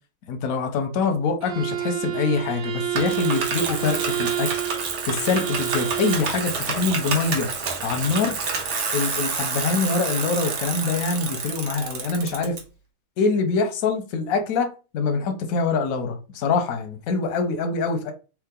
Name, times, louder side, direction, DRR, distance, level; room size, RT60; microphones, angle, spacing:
voice 1, 0.3-4.6 5.0-7.5 7.8-8.4 8.9-12.6 13.2-18.1, left 4 dB, 65° left, 0.9 m, -24 dB
Bowed string instrument, 1.4-6.3, right 12 dB, 80° right, 1.4 m, -29 dB
Bicycle, 2.9-12.6, right 5 dB, 65° right, 1.4 m, -29 dB
3.7 x 3.0 x 3.7 m
omnidirectional pair, 2.1 m